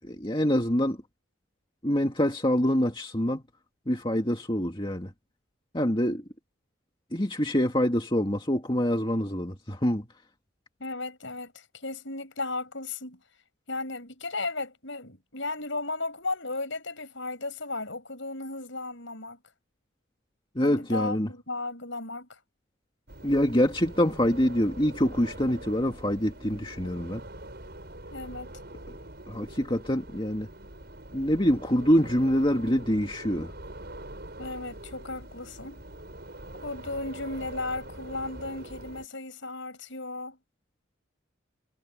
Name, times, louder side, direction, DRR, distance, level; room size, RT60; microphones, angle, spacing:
voice 1, 0.0-1.0 1.8-3.4 3.9-5.1 5.7-6.2 7.1-10.1 20.5-21.3 23.2-27.2 28.9-29.0 29.3-30.5 31.1-33.5, equal, 25° left, 2.2 m, -25 dB
voice 2, 10.8-13.2 13.7-19.4 20.6-22.4 28.1-28.5 34.4-35.8 36.6-40.4, left 2 dB, 65° left, 7.6 m, -35 dB
sound 1, 23.1-39.1, right 1 dB, 50° right, 6.4 m, -44 dB
head